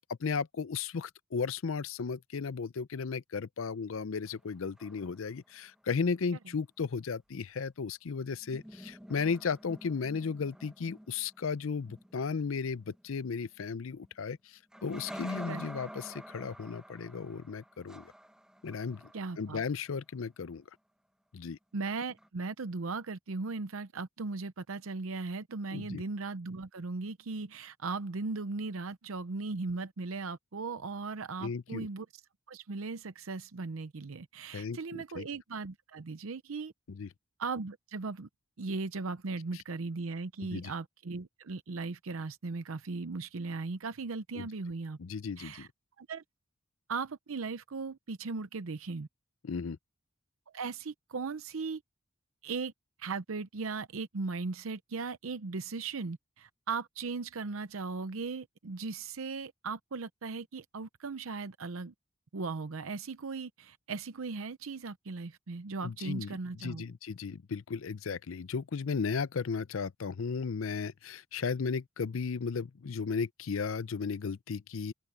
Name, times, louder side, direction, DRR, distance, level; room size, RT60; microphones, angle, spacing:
voice 1, 0.0-18.0 18.6-19.0 19.4-20.6 21.3-21.6 25.7-26.0 31.4-31.9 34.5-35.3 36.9-37.1 39.5-39.6 40.4-40.7 44.3-44.5 45.0-45.7 49.4-49.8 65.8-66.3 66.6-74.9, left 5 dB, 75° left, 0.5 m, -35 dB
sound 1, 4.3-5.5 8.3-14.1 14.7-19.8 22.2-22.3, equal, 5° right, 1.2 m, -49 dB
voice 2, 19.1-19.6 21.7-32.1 32.5-36.7 37.4-38.3 38.6-45.0 45.4-45.7 46.0-46.2 46.9-49.1 50.5-51.8 52.4-52.7 53.0-61.9 62.3-66.8, right 4 dB, 85° right, 0.7 m, -38 dB
open air
head